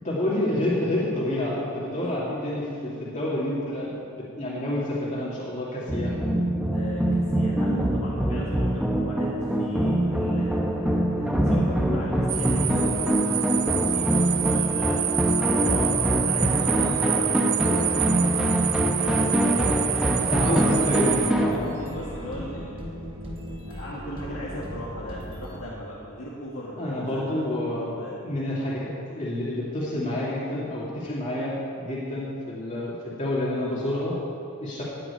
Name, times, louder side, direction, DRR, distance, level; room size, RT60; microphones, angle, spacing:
voice 1, 0.0-6.2 15.7-15.9 20.2-21.8 26.8-28.0 28.2-34.1 34.6-34.8, left 1 dB, 35° left, -7 dB, 2.5 m, -28 dB
sound 1, 5.9-21.6, right 1 dB, 5° right, 1.1 m, -24 dB
voice 2, 6.7-15.6 16.2-20.4 20.7-20.9 21.6-22.9 23.6-28.2, equal, 70° left, -5 dB, 2.0 m, -38 dB
sound 2, 12.3-21.3, right 12 dB, 70° right, 0.7 m, -27 dB
sound 3, 20.5-25.5, equal, 25° right, 2.9 m, -38 dB
15.5 x 6.0 x 9.9 m, 2.6 s
head